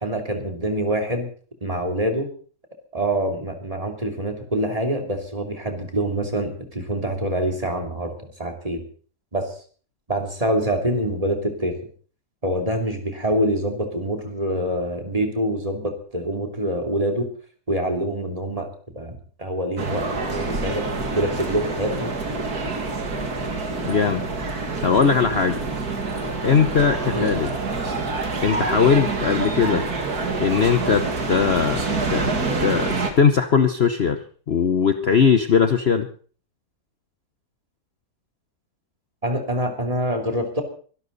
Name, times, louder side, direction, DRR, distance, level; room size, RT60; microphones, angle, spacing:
voice 1, 0.0-1.3 1.6-2.3 2.9-8.8 9.3-9.5 10.1-11.7 12.4-17.3 17.7-18.7 18.9-20.8 21.1-22.1 27.1-27.4 39.2-40.6, right 1 dB, 20° right, 3 dB, 3.2 m, -25 dB
sound 1, 19.8-33.1, right 3 dB, 70° right, 2.6 m, -27 dB
voice 2, 23.8-24.2 24.8-25.6 26.4-27.5 28.4-29.8 30.4-31.8 32.1-32.3 32.6-34.2 34.5-36.1, left 6 dB, 45° left, 8 dB, 1.1 m, -19 dB
24.0 x 12.0 x 4.1 m, 0.42 s
omnidirectional pair, 1.7 m